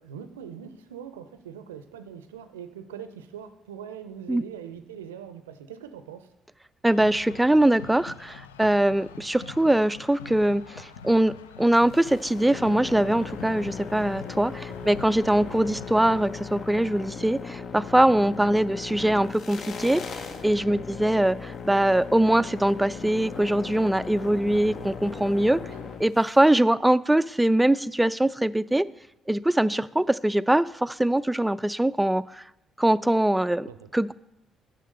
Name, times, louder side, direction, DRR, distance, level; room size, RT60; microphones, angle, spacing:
voice 1, 0.0-6.3 14.8-14.9 20.6-20.8 25.6-25.8 33.7-33.9, right 8 dB, 80° right, 11 dB, 0.5 m, -42 dB
voice 2, 6.8-20.0 20.4-25.6 26.0-28.9 29.3-32.4 32.8-34.1, right 1 dB, 10° right, 18 dB, 0.3 m, -22 dB
sound 1, 6.9-16.3, left 7 dB, 80° left, 0.4 m, -45 dB
sound 2, 11.9-26.4, left 5 dB, 55° left, 0.9 m, -38 dB
6.9 x 6.5 x 6.5 m, 0.87 s
figure-of-eight pair, 45°, 0 cm